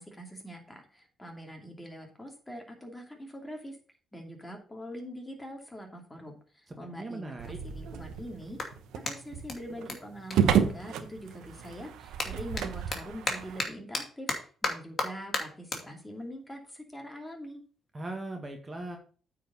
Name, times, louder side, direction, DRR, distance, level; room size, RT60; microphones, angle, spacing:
voice 1, 0.0-3.8 4.1-8.6 9.0-17.6, equal, 10° left, 2 dB, 2.7 m, -43 dB
Clapping, 6.5-6.6 7.2-11.3 11.6-18.2, left 3 dB, 40° left, 2.5 m, -38 dB
voice 2, 6.7-7.6 17.9-19.0, right 2 dB, 25° right, 3 dB, 1.6 m, -39 dB
sound 1, 7.4-13.7, right 8 dB, 85° right, 0.9 m, -31 dB
8.9 x 4.9 x 5.5 m, 0.41 s
cardioid pair, 90°, 0 cm